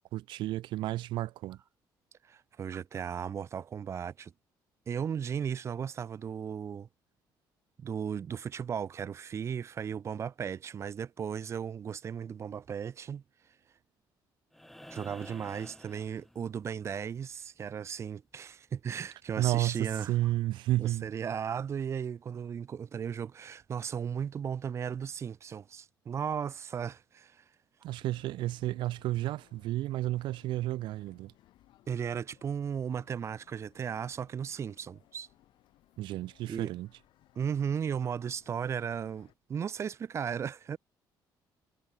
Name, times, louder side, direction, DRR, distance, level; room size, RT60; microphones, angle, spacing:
voice 1, 0.1-1.6 19.4-21.1 27.8-31.3 36.0-36.9, right 15 dB, 80° right, 2.2 m, -32 dB
voice 2, 2.2-4.3 4.9-6.9 7.8-13.2 14.9-20.1 20.8-27.4 31.9-35.3 36.5-36.7 37.3-40.8, right 7 dB, 35° right, 1.6 m, -36 dB
sound 1, 14.5-16.8 18.7-18.8, left 1 dB, 5° left, 3.3 m, -51 dB
sound 2, 27.9-39.3, left 15 dB, 75° left, 7.7 m, -64 dB
cardioid pair, 160°, 8 cm